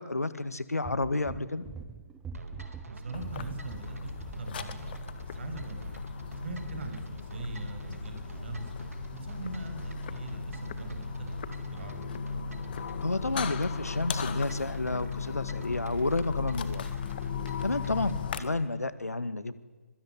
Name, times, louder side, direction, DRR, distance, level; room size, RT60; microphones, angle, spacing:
voice 1, 0.0-1.6 13.0-16.8 17.6-18.1 18.4-19.5, left 2 dB, 75° left, 14 dB, 1.8 m, -30 dB
sound 1, 0.8-4.9 5.1-5.3, right 5 dB, 10° right, 1.0 m, -45 dB
sound 2, 2.3-18.2, right 2 dB, 70° right, 4.2 m, -46 dB
voice 2, 2.9-5.9 6.4-8.6 9.1-12.1 18.0-18.2, right 3 dB, 45° right, 6 dB, 7.0 m, -41 dB
sound 3, 3.1-18.4, left 6 dB, 35° left, 1.9 m, -37 dB
25.5 x 23.5 x 9.9 m, 1.3 s
figure-of-eight pair, 140°, 8 cm